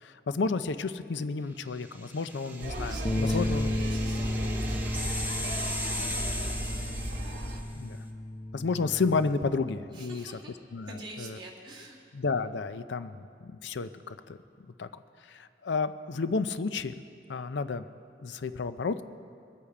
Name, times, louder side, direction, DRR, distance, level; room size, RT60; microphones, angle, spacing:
voice 1, 0.0-3.7 7.7-8.0 8.5-10.3 10.7-10.9 11.2-11.4 12.1-14.4 14.8-14.9 15.3-16.9 17.3-17.8 18.2-19.0, left 4 dB, 85° left, 12 dB, 0.5 m, -31 dB
sound 1, 1.8-7.7, left 1 dB, 10° right, 0.8 m, -38 dB
sound 2, 2.6-7.6, right 1 dB, 55° right, 1.7 m, -35 dB
voice 2, 2.9-7.2 9.9-10.6 10.9-12.0, right 1 dB, 25° right, -4 dB, 2.1 m, -46 dB
sound 3, 3.0-9.3, left 1 dB, 25° left, 0.8 m, -34 dB
22.0 x 8.5 x 4.9 m, 2.4 s
head